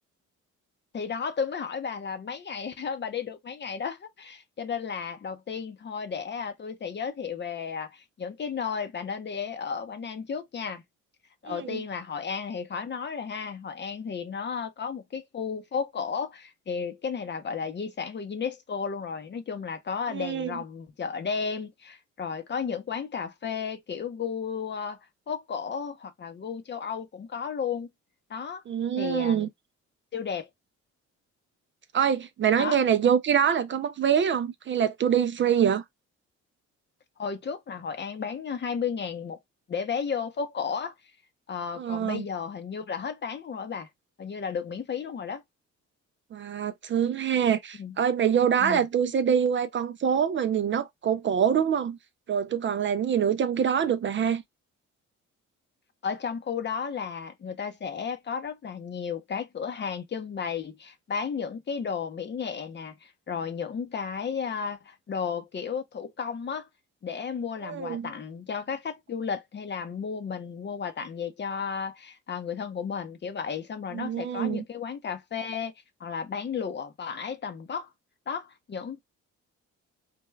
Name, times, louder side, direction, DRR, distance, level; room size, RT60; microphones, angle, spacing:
voice 1, 0.9-10.8 11.4-25.0 25.3-27.9 28.3-28.6 29.0-29.5 30.1-30.5 32.6-32.8 37.2-39.4 39.7-40.9 41.5-43.9 44.2-45.4 47.5-48.0 48.6-48.8 56.0-66.7 67.0-75.7 76.0-77.9 78.3-79.0, left 6 dB, 35° left, 0.6 m, -33 dB
voice 2, 11.5-11.8 20.1-20.6 28.7-29.5 31.9-35.8 41.8-42.3 46.3-52.0 52.3-54.4 67.6-68.1 73.9-74.6, right 8 dB, 40° right, 0.4 m, -25 dB
3.3 x 2.2 x 3.1 m
cardioid pair, 90°, 30 cm